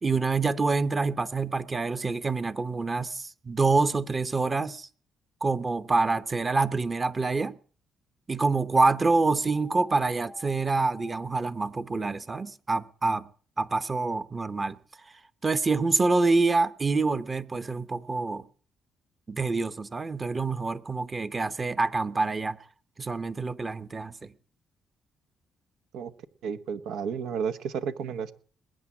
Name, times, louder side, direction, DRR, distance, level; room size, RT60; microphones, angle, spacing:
voice 1, 0.0-4.9 5.4-7.5 8.3-13.3 13.6-14.8 15.4-18.4 19.3-22.6 23.0-24.3, right 3 dB, 30° right, 1.0 m, -26 dB
sound 1, 9.5-11.2, left 2 dB, 50° right, 7.3 m, -48 dB
voice 2, 26.4-28.3, right 6 dB, 85° right, 1.1 m, -32 dB
20.5 x 9.2 x 7.2 m
cardioid pair, 90°, 0 cm